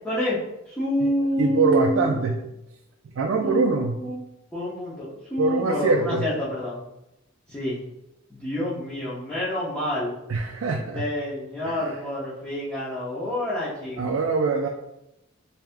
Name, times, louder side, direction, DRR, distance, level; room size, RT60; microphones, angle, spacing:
voice 1, 0.0-0.4 0.7-2.3 3.4-4.2 4.5-6.8 7.5-7.8 8.3-10.2 10.9-14.2, left 1 dB, 10° left, -12 dB, 0.8 m, -28 dB
voice 2, 1.4-2.4 3.1-4.0 5.4-6.2 10.3-11.0 11.6-12.0 14.0-14.7, right 4 dB, 80° right, 1 dB, 0.4 m, -23 dB
3.3 x 2.8 x 3.5 m, 0.86 s
head